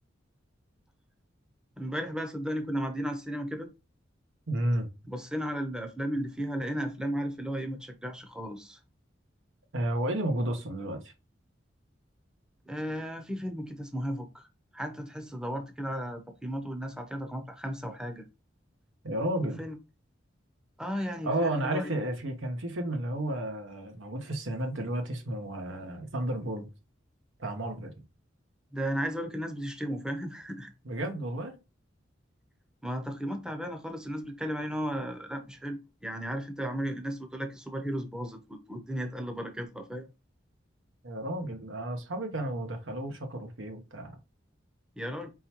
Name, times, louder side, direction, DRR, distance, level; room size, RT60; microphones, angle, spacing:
voice 1, 1.8-3.7 5.1-8.8 12.7-14.5 14.7-18.3 19.4-19.8 20.8-21.9 28.7-30.7 32.8-40.1 45.0-45.3, equal, 5° right, 0.6 m, -35 dB
voice 2, 4.5-4.9 9.7-11.1 19.0-19.6 21.2-26.7 27.4-27.9 30.8-31.5 41.0-44.2, right 1 dB, 90° right, 1.1 m, -32 dB
4.5 x 3.8 x 2.9 m
head